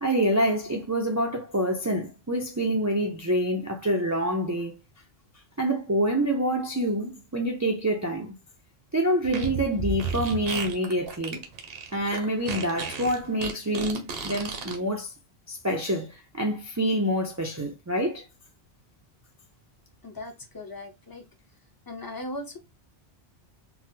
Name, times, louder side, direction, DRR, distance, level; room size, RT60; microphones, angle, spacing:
voice 1, 0.0-4.7 5.6-8.3 8.9-11.5 11.9-15.1 15.5-18.3, right 1 dB, 25° right, 0.4 m, -26 dB
Fart, 9.2-14.8, right 4 dB, 65° right, 1.0 m, -33 dB
voice 2, 20.0-21.2 21.9-22.6, left 1 dB, 25° left, 0.6 m, -38 dB
3.9 x 2.1 x 2.7 m
omnidirectional pair, 1.1 m